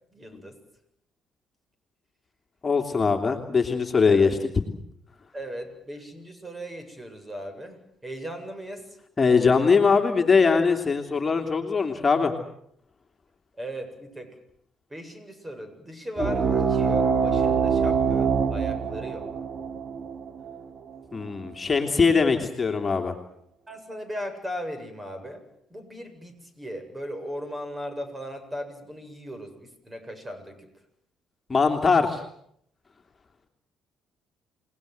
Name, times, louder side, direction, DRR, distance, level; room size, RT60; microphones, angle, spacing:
voice 1, 0.1-0.6 4.1-4.3 5.3-9.0 13.6-14.3 14.9-19.3 23.7-25.4 25.7-30.7, equal, 20° right, 8 dB, 7.8 m, -37 dB
voice 2, 2.6-4.4 9.2-12.3 21.1-23.1 31.5-32.2, left 5 dB, 30° left, 3 dB, 3.1 m, -21 dB
sound 1, 16.2-21.3, right 6 dB, 45° right, 3.4 m, -25 dB
29.5 x 19.5 x 8.0 m, 0.70 s
hypercardioid pair, 55°, 0 cm